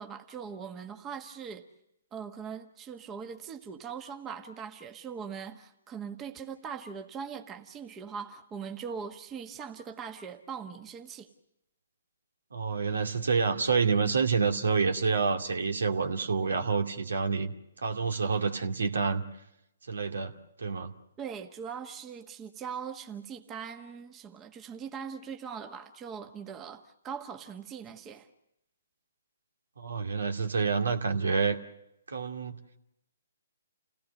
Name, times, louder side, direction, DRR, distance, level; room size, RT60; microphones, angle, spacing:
voice 1, 0.0-1.6 2.1-11.3 21.2-28.3, right 6 dB, 20° right, 5 dB, 1.5 m, -41 dB
voice 2, 12.5-17.5 17.8-19.2 19.9-20.3 20.6-20.9 29.8-31.6 32.1-32.6, right 5 dB, 80° right, 5 dB, 2.4 m, -28 dB
29.5 x 17.5 x 6.5 m, 0.82 s
hypercardioid pair, 140°, 0 cm